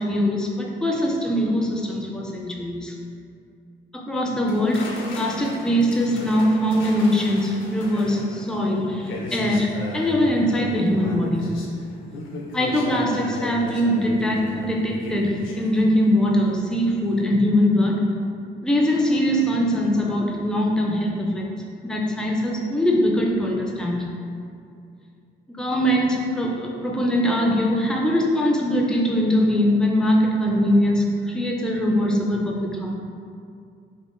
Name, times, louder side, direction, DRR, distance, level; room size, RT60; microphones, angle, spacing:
voice 1, 0.0-2.9 3.9-11.6 12.5-18.0 18.6-21.4 21.8-24.1 25.5-33.0, equal, 5° left, -1 dB, 0.3 m, -22 dB
sound 1, 4.5-16.6 16.8-17.2, left 2 dB, 80° left, 0.5 m, -36 dB
3.5 x 2.0 x 2.4 m, 2.4 s
cardioid pair, 90°, 20 cm